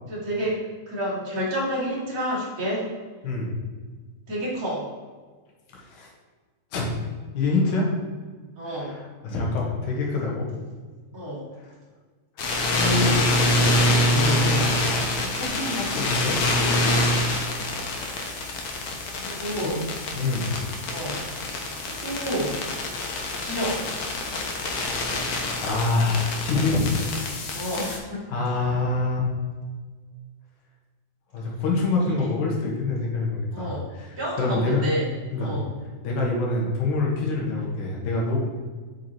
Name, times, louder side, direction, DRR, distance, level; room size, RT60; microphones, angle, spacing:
voice 1, 0.1-0.6 0.9-2.9 4.3-4.9 8.6-8.9 11.1-11.4 19.1-19.8 20.9-21.3 21.8-22.6 23.4-23.8 27.5-28.5 32.1-32.3 33.5-33.9 34.2-35.1 35.4-35.7, equal, 30° right, -8 dB, 2.4 m, -29 dB
voice 2, 5.7-6.1 6.7-6.9 7.3-7.9 8.6-10.5 11.6-11.7 12.4-14.8 15.3-16.4 19.6-19.9 20.1-20.6 25.6-27.0 28.3-29.2 31.3-34.8 35.3-35.5 36.0-38.4, left 3 dB, 85° left, -2 dB, 2.8 m, -26 dB
sound 1, 12.4-28.0, left 1 dB, 65° left, 1.3 m, -26 dB
8.1 x 5.9 x 3.0 m, 1.4 s
omnidirectional pair, 3.5 m